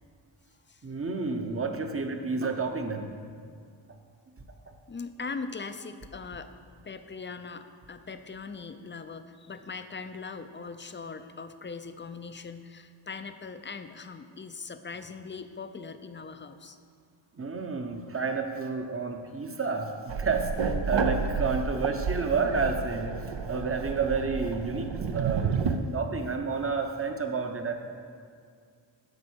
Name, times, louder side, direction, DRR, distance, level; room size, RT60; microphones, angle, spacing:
voice 1, 0.8-3.1 17.3-23.2 23.5-25.6 25.9-27.7, right 4 dB, 30° right, 5 dB, 0.9 m, -30 dB
voice 2, 4.9-6.5 6.8-16.8, left 4 dB, 25° left, 9 dB, 0.5 m, -40 dB
sound 1, 20.1-25.8, right 5 dB, 65° right, 0.7 m, -31 dB
13.5 x 5.3 x 6.2 m, 2.2 s
wide cardioid pair, 130°, 47 cm